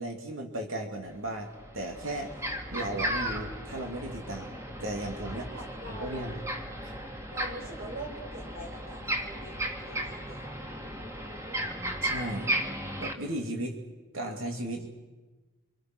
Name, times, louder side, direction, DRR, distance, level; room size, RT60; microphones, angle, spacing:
voice 1, 0.0-2.3 2.7-4.5 4.8-5.5 5.9-6.4 6.8-7.0 12.0-12.5 13.0-13.8 14.1-14.9, right 1 dB, 75° right, 2 dB, 2.9 m, -35 dB
sound 1, 1.5-13.1, right 1 dB, 15° right, 2.2 m, -35 dB
voice 2, 5.4-6.4 7.3-9.6 9.9-10.4, right 1 dB, 45° right, 1 dB, 6.3 m, -43 dB
28.5 x 26.5 x 6.3 m, 1.2 s
head